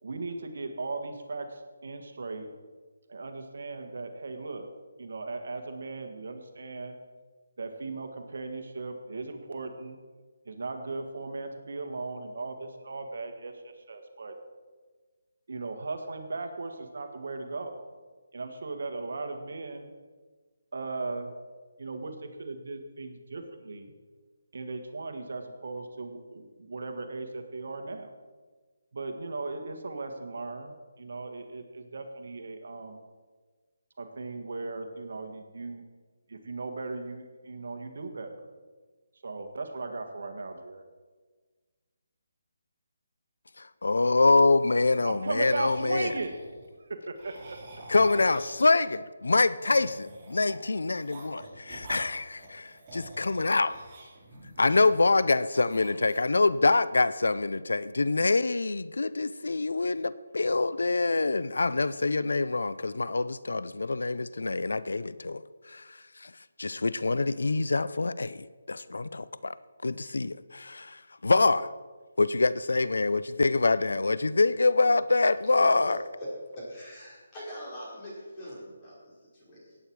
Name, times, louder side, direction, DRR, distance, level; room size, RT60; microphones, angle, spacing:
voice 1, 0.0-2.5 3.1-4.7 5.0-6.9 7.6-10.0 10.4-14.3 15.5-17.8 18.3-19.9 20.7-21.3 21.8-23.9 24.5-28.1 28.9-33.0 34.0-35.8 36.3-38.4 39.2-40.8 45.0-46.4 46.8-47.7, right 3 dB, 65° right, 1.7 m, -37 dB
voice 2, 43.6-46.1 47.9-53.8 54.6-65.4 65.7-66.3 66.6-69.6 69.8-71.7 72.2-76.0, left 3 dB, 90° left, 0.5 m, -25 dB
sound 1, 45.5-46.7 47.2-48.9 49.6-55.2 55.5-56.4, right 2 dB, 20° right, 3.9 m, -47 dB
voice 3, 75.6-76.3 76.6-79.8, equal, 20° left, 4.9 m, -41 dB
17.5 x 8.8 x 4.7 m
hypercardioid pair, 170°, 0 cm